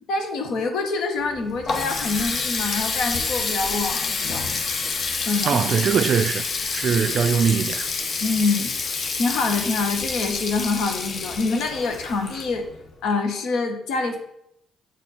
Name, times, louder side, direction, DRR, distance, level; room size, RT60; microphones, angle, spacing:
voice 1, 0.1-4.5 5.2-5.6 6.9-7.0 8.2-8.7 9.1-12.6 13.0-14.2, left 3 dB, 80° left, 1.4 m, -25 dB
Water tap faucet, 1.2-12.9, left 4 dB, 55° left, 1.1 m, -28 dB
voice 2, 5.5-6.4 6.7-7.9, right 7 dB, 60° right, 0.3 m, -21 dB
8.1 x 4.4 x 4.2 m
cardioid pair, 90°, 0 cm